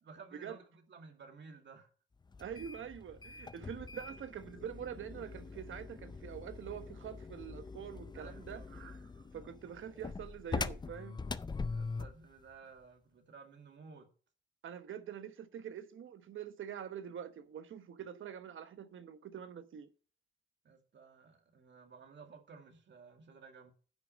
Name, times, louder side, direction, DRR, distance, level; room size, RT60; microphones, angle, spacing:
voice 1, 0.0-1.9 8.1-8.7 11.7-14.1 20.6-23.7, right 5 dB, 65° right, 2.2 m, -55 dB
sound 1, 2.3-12.2, left 4 dB, 20° left, 0.4 m, -43 dB
voice 2, 2.4-11.2 14.6-19.9, right 8 dB, 85° right, 1.1 m, -45 dB
10.0 x 6.2 x 5.3 m
wide cardioid pair, 105°, 20 cm